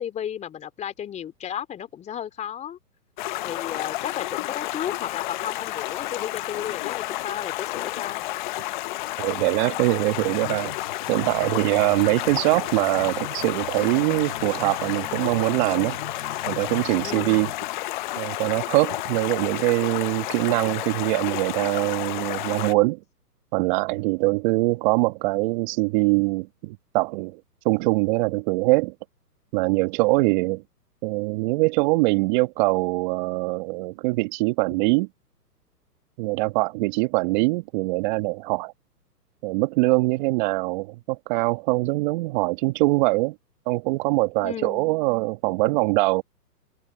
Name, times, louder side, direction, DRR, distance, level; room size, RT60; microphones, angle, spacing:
voice 1, 0.0-2.8 3.4-8.2 17.0-17.5 44.4-44.9, left 9 dB, 15° left, 3.1 m, -34 dB
Stream, 3.2-22.7, left 18 dB, 30° left, 1.0 m, -31 dB
voice 2, 9.2-10.7 11.1-16.0 16.5-17.5 18.2-23.0 23.5-27.4 27.7-28.9 29.5-30.6 31.0-35.1 36.2-38.7 39.4-43.3 43.7-46.2, right 24 dB, 30° right, 1.7 m, -23 dB
sound 1, 10.1-17.7, left 4 dB, 85° left, 6.6 m, -41 dB
hypercardioid pair, 135°, 48 cm